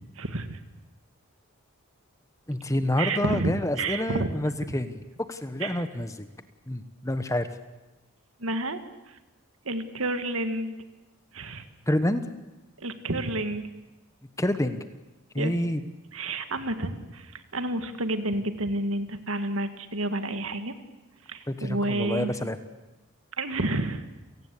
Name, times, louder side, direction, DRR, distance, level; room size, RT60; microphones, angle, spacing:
voice 1, 0.2-0.6 3.0-4.3 5.6-5.8 8.4-8.8 9.7-10.7 11.3-11.7 12.8-13.6 15.4-15.5 16.1-20.7 21.3-22.3 23.4-24.0, right 2 dB, 70° right, 9 dB, 1.9 m, -30 dB
voice 2, 2.5-5.0 5.3-6.3 6.7-7.5 11.9-12.2 14.4-14.8 15.3-15.8 21.5-22.6, left 1 dB, 15° left, 10 dB, 1.1 m, -28 dB
29.5 x 18.0 x 8.5 m, 1.1 s
head